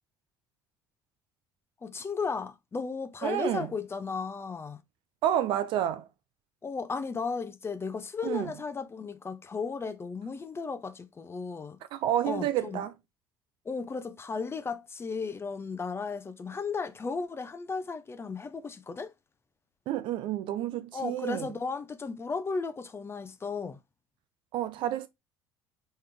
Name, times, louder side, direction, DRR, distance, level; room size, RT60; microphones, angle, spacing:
voice 1, 1.8-4.8 6.6-11.8 12.2-12.8 13.6-19.1 20.9-23.8, left 4 dB, 25° left, 0.6 m, -35 dB
voice 2, 3.2-3.7 5.2-6.1 8.2-8.5 11.9-12.9 19.9-21.5 24.5-25.1, right 11 dB, 55° right, 0.6 m, -29 dB
4.2 x 3.8 x 3.3 m
figure-of-eight pair, 60°, 11 cm